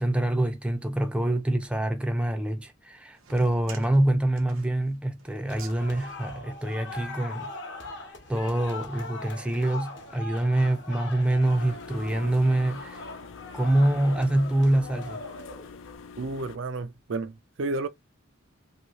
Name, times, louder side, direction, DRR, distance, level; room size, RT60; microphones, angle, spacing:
voice 1, 0.0-7.5 7.9-8.0 8.3-13.1 13.5-15.2, right 1 dB, 5° right, 0.4 m, -25 dB
sound 1, 3.2-7.7, right 5 dB, 90° right, 0.8 m, -49 dB
sound 2, 5.5-16.0, left 2 dB, 60° left, 0.9 m, -41 dB
sound 3, 11.4-16.6, left 5 dB, 75° left, 0.4 m, -45 dB
voice 2, 16.2-17.9, right 3 dB, 65° right, 0.4 m, -31 dB
3.0 x 2.7 x 2.8 m
head